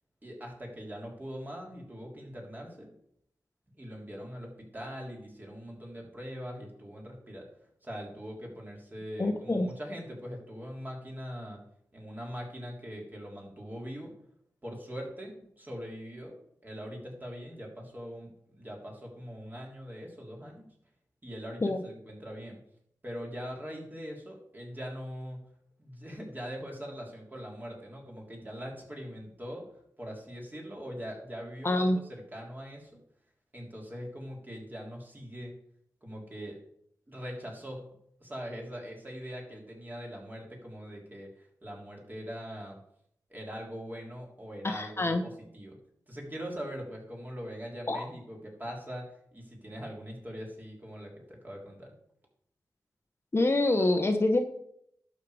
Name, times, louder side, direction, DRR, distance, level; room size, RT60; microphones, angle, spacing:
voice 1, 0.2-2.9 3.8-7.5 7.8-11.6 11.9-14.1 14.6-16.4 16.6-20.7 21.2-22.6 23.0-25.4 25.8-29.6 30.0-33.0 33.5-35.5 36.0-36.6 37.1-37.8 38.2-42.8 43.3-45.1 45.5-45.8 46.1-51.9, equal, 25° right, -1 dB, 3.4 m, -42 dB
voice 2, 9.2-9.7 21.6-21.8 31.6-32.0 44.6-45.2 47.9-48.0 53.3-54.4, left 2 dB, 35° left, 6 dB, 1.0 m, -26 dB
11.5 x 6.6 x 4.9 m, 0.72 s
cardioid pair, 70°, 7 cm